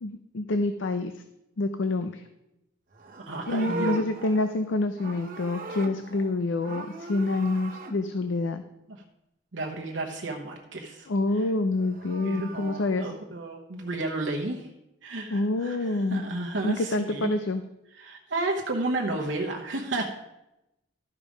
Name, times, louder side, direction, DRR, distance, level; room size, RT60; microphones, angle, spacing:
voice 1, 0.0-1.1 1.6-2.2 3.5-8.6 11.1-13.1 15.3-16.2 16.6-17.6, left 2 dB, 80° left, 9 dB, 0.5 m, -27 dB
Livestock farm animals working animals, 2.9-6.3 6.6-7.9 11.7-12.9, right 2 dB, 45° right, 1.0 m, -38 dB
voice 2, 3.2-4.0 8.9-9.0 9.5-11.1 11.3-11.5 12.2-14.7 15.0-17.4 17.9-20.1, right 2 dB, 75° right, 1 dB, 0.9 m, -32 dB
13.0 x 5.3 x 5.0 m, 0.90 s
head